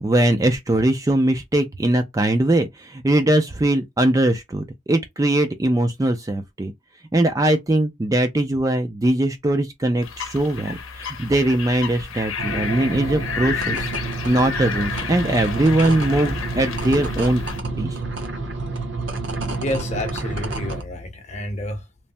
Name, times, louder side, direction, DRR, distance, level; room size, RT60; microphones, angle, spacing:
voice 1, 0.0-6.7 7.1-13.9 14.2-17.4 17.8-18.0, right 1 dB, 15° right, 0.3 m, -21 dB
sound 1, 10.0-17.6, left 6 dB, 85° left, 0.7 m, -31 dB
sound 2, 12.4-20.8, right 3 dB, 60° right, 0.8 m, -29 dB
voice 2, 19.6-21.8, left 1 dB, 35° left, 0.7 m, -29 dB
3.1 x 2.1 x 2.6 m
head